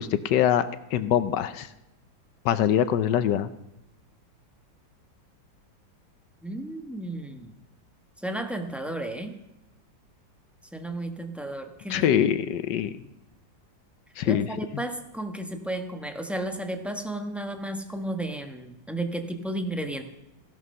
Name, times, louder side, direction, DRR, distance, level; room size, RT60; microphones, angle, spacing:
voice 1, 0.0-1.7 2.4-3.5 11.9-12.9 14.2-14.5, left 10 dB, 70° left, 13 dB, 1.2 m, -23 dB
voice 2, 6.4-7.5 8.2-9.3 10.7-12.1 14.2-20.0, right 1 dB, ahead, 5 dB, 1.0 m, -33 dB
16.0 x 11.0 x 5.6 m, 0.96 s
omnidirectional pair, 2.1 m